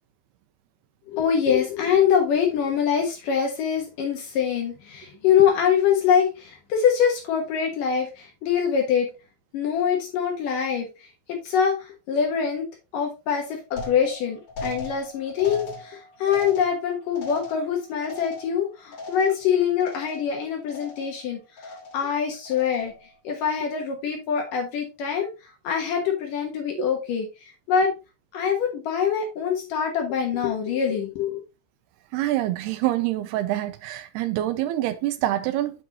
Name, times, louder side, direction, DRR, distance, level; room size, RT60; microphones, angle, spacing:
voice 1, 1.1-9.1 9.5-12.7 12.9-22.9 23.2-27.3 27.7-27.9 28.3-31.4, left 7 dB, 65° left, 2.3 m, -24 dB
sound 1, 13.8-19.5 19.8-20.4 20.7-21.2 21.6-22.1 22.5-23.0, left 2 dB, 45° left, 3.3 m, -38 dB
voice 2, 32.1-35.8, right 14 dB, 85° right, 2.3 m, -26 dB
7.9 x 6.1 x 2.9 m
omnidirectional pair, 5.3 m